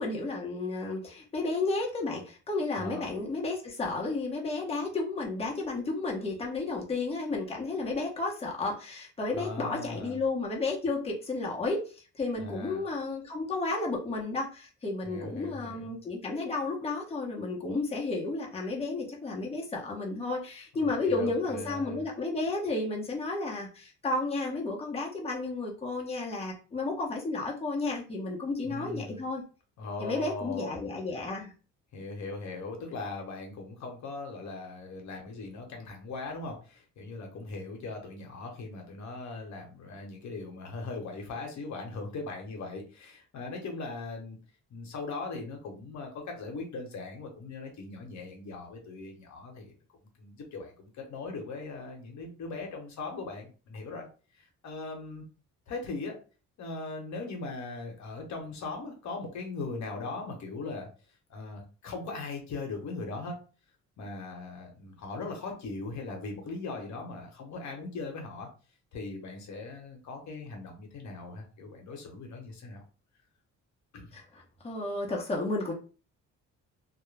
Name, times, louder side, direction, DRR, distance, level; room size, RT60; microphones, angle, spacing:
voice 1, 0.0-11.8 12.1-29.4 30.0-31.5 74.1-74.2 74.6-75.7, left 3 dB, 20° left, -2 dB, 0.8 m, -32 dB
voice 2, 9.3-10.2 12.4-12.8 15.0-15.9 20.8-22.0 28.6-29.2 29.8-30.8 31.9-44.4 44.7-49.7 50.2-54.1 54.4-55.2 55.7-56.2 56.6-60.9 61.3-63.4 64.0-68.5 68.9-72.8 73.9-74.1, left 3 dB, 70° left, 2 dB, 0.9 m, -39 dB
2.2 x 2.0 x 3.2 m, 0.36 s
cardioid pair, 90°, 30 cm